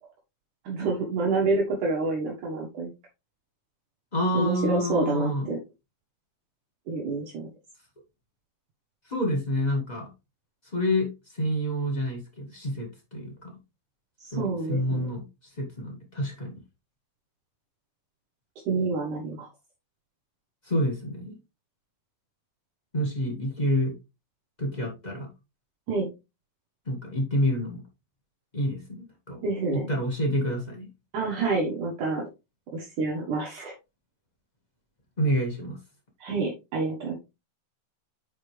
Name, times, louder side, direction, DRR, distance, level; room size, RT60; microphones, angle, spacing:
voice 1, 0.6-2.9 4.3-5.6 6.9-7.5 14.2-15.1 18.7-19.5 25.9-26.1 29.4-29.9 31.1-32.3 32.7-33.7 36.2-37.2, right 3 dB, 65° right, -2 dB, 2.7 m, -28 dB
voice 2, 4.1-5.5 9.1-10.1 10.7-13.6 14.3-15.3 15.6-16.6 20.7-21.4 22.9-23.9 24.6-25.3 26.9-27.8 28.5-29.4 29.7-30.9 35.2-35.8, equal, 50° left, 1 dB, 0.5 m, -28 dB
8.7 x 4.8 x 3.3 m, 0.25 s
omnidirectional pair, 4.2 m